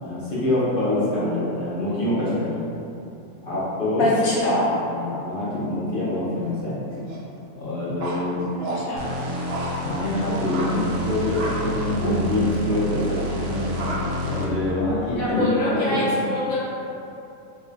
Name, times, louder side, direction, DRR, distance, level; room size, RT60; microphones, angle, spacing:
voice 1, 0.0-2.5 3.4-4.1 4.9-6.8 7.5-8.4 9.8-13.7 14.2-16.1, left 1 dB, 50° left, -9 dB, 0.7 m, -25 dB
voice 2, 4.0-4.7 8.5-9.1 15.2-16.6, left 1 dB, 70° left, -8 dB, 1.2 m, -24 dB
sound 1, 6.9-7.2 8.0-8.8 9.5-9.7 10.3-10.7 11.3-11.6 12.0-12.2 12.9-13.2 13.7-14.0 14.4-14.9, right 1 dB, 60° right, 0.7 m, -32 dB
sound 2, 9.0-14.7, equal, 85° right, 1.1 m, -29 dB
3.3 x 2.3 x 3.2 m, 2.7 s
omnidirectional pair, 1.6 m